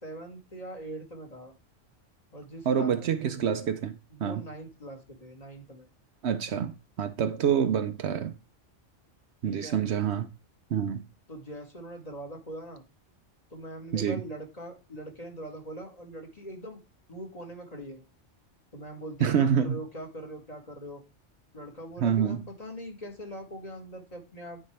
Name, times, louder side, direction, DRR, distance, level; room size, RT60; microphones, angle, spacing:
voice 1, 0.0-1.5 2.3-3.5 4.1-5.9 9.4-9.9 11.3-12.8 13.5-16.8 17.1-18.0 18.7-21.0 21.5-24.6, right 1 dB, 30° left, 1.7 m, -42 dB
voice 2, 2.7-4.4 6.2-6.7 7.0-8.4 9.4-10.3 10.7-11.0 13.9-14.2 19.2-19.8 22.0-22.4, right 8 dB, 65° right, 0.9 m, -27 dB
9.6 x 4.5 x 3.3 m
omnidirectional pair, 1.2 m